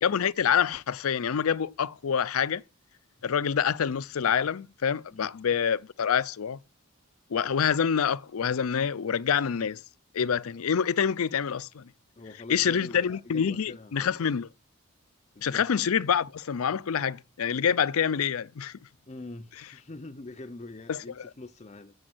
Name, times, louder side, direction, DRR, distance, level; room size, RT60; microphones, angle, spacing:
voice 1, 0.0-2.6 3.2-6.6 7.3-9.8 10.1-11.8 12.5-14.5 15.4-18.8 20.9-21.2, left 7 dB, 80° left, 0.5 m, -26 dB
voice 2, 12.2-14.2 15.3-15.7 19.1-21.9, left 2 dB, 30° left, 0.5 m, -43 dB
8.8 x 7.0 x 6.1 m
head